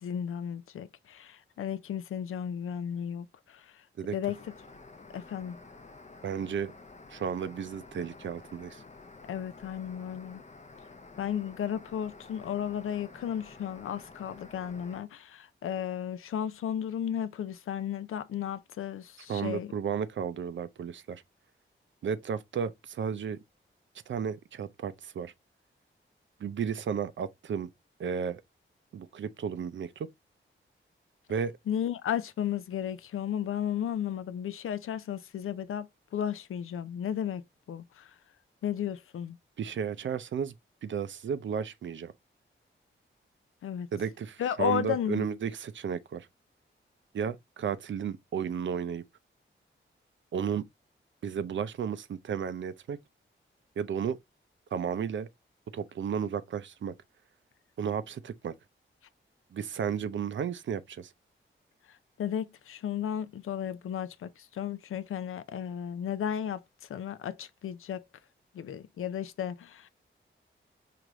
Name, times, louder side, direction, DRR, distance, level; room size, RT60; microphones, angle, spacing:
voice 1, 0.0-3.8 4.1-4.4 5.1-5.6 9.3-10.4 11.2-19.7 31.7-35.9 36.1-37.4 37.7-38.1 38.6-39.4 43.6-43.9 44.4-45.3 62.2-66.6 66.9-68.0 68.5-69.9, left 9 dB, 85° left, 0.4 m, -34 dB
sound 1, 4.2-15.0, left 3 dB, 35° left, 0.6 m, -51 dB
voice 2, 6.2-6.7 7.1-8.8 19.3-21.2 22.0-23.4 24.1-25.3 26.4-27.7 28.0-28.4 28.9-30.1 31.3-31.5 39.6-40.5 40.8-42.1 43.9-46.3 47.1-49.0 50.3-50.6 51.2-53.0 53.8-54.2 54.7-55.3 55.7-56.9 57.8-58.5 59.5-61.1, right 7 dB, 65° right, 0.5 m, -33 dB
4.7 x 2.5 x 2.9 m
wide cardioid pair, 95°, 21 cm